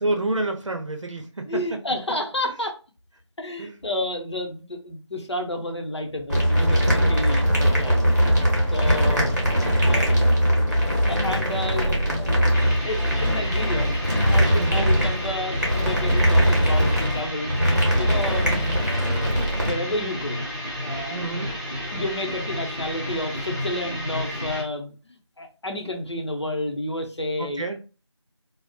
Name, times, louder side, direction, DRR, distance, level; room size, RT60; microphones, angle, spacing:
voice 1, 0.0-1.5 3.6-3.7 7.4-8.0 8.9-9.3 14.5-14.9 18.5-18.8 21.1-21.6 27.4-27.8, right 2 dB, 75° right, 4 dB, 0.6 m, -29 dB
voice 2, 1.5-2.8 3.4-8.5 8.7-9.4 9.8-10.3 10.7-10.8 11.1-17.5 18.0-18.7 19.6-20.4 20.8-21.3 21.9-27.7, left 1 dB, 60° left, 3 dB, 0.7 m, -31 dB
sound 1, 6.3-19.7, equal, 35° right, 0.8 m, -21 dB
sound 2, 12.5-24.6, left 1 dB, 40° left, 1.5 m, -31 dB
2.6 x 2.0 x 2.3 m, 0.34 s
figure-of-eight pair, 180°, 16 cm